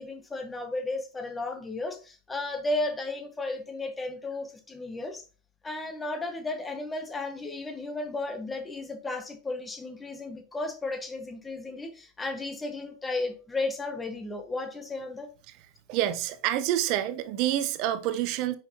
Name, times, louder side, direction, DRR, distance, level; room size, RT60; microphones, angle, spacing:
voice 1, 0.0-5.2 5.6-15.3, left 2 dB, 15° left, 1.5 m, -34 dB
voice 2, 15.9-18.5, right 12 dB, 40° right, 0.8 m, -27 dB
9.5 x 5.8 x 3.0 m
figure-of-eight pair, 90°, 0 cm